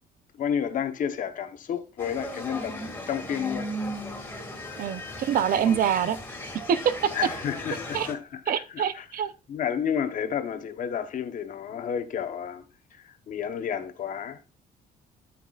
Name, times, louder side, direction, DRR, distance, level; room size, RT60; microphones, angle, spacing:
voice 1, 0.4-2.8 3.1-3.7 5.6-5.8 7.1-9.1 9.5-12.6 12.9-14.4, left 8 dB, 55° left, 1.1 m, -31 dB
sound 1, 2.0-8.1, equal, 10° left, 2.2 m, -37 dB
voice 2, 4.8-6.2 6.7-7.1 7.9-8.1 8.5-9.3, right 8 dB, 65° right, 0.7 m, -25 dB
13.5 x 5.9 x 2.4 m
cardioid pair, 150°, 16 cm